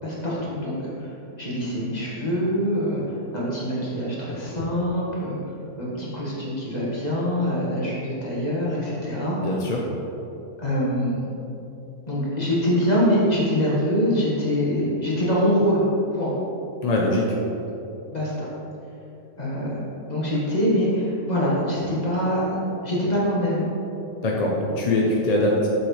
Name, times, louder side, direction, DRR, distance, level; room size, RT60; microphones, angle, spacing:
voice 1, 0.0-1.1 1.4-9.4 10.6-11.2 12.1-15.8 16.1-16.3 18.1-18.5 19.4-19.8 20.1-22.6 22.8-23.6, equal, 25° left, -7 dB, 1.8 m, -24 dB
voice 2, 9.4-9.8 16.8-17.4 24.2-25.7, left 1 dB, 45° left, -2 dB, 0.5 m, -22 dB
7.5 x 7.0 x 3.3 m, 3.0 s
omnidirectional pair, 1.6 m